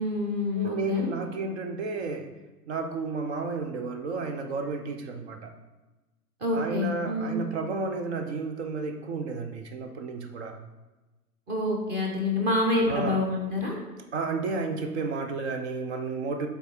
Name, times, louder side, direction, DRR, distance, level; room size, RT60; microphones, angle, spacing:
voice 1, 0.0-1.1 6.4-7.4 11.5-13.8, left 2 dB, 20° right, 0 dB, 1.2 m, -27 dB
voice 2, 0.5-2.3 2.7-5.5 6.5-10.6 12.8-13.2 14.1-16.5, right 4 dB, 40° right, 5 dB, 0.9 m, -32 dB
8.4 x 3.7 x 4.4 m, 1.1 s
figure-of-eight pair, 110°, 49 cm